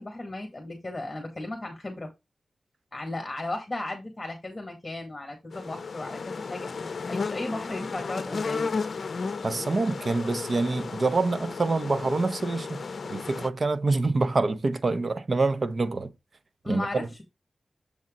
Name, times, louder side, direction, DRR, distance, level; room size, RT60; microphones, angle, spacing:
voice 1, 0.0-2.1 2.9-8.7 16.6-17.2, left 2 dB, 25° left, 2.0 m, -35 dB
sound 1, 5.5-13.5, left 4 dB, 70° left, 0.6 m, -34 dB
voice 2, 9.4-16.1 16.7-17.1, right 3 dB, 50° right, 0.8 m, -26 dB
7.2 x 4.2 x 3.8 m
wide cardioid pair, 85°, 0 cm